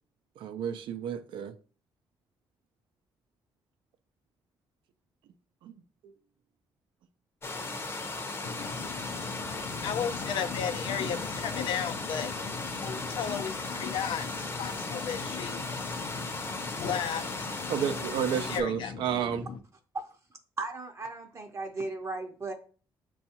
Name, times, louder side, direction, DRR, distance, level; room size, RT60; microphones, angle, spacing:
voice 1, 0.4-1.5 5.6-5.7 6.0-6.1 17.7-19.5, right 8 dB, 80° right, 0.4 m, -31 dB
sound 1, 7.4-18.6, left 3 dB, 30° left, 0.7 m, -36 dB
voice 2, 8.4-19.6, left 7 dB, 80° left, 0.5 m, -35 dB
voice 3, 20.6-22.5, right 3 dB, 35° right, 0.6 m, -36 dB
6.9 x 2.3 x 2.8 m
cardioid pair, 90°, 8 cm